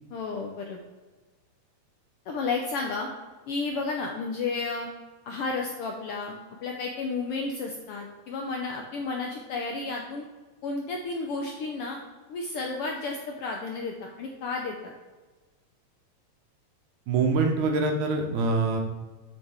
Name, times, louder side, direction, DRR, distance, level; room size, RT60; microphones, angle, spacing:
voice 1, 0.1-0.8 2.3-3.1 3.5-4.9 5.2-10.2 10.6-12.0 12.3-14.9, left 3 dB, 75° left, 1 dB, 1.3 m, -32 dB
voice 2, 17.1-18.8, right 3 dB, 85° right, 3 dB, 2.5 m, -24 dB
7.0 x 6.2 x 3.5 m, 1.3 s
omnidirectional pair, 3.3 m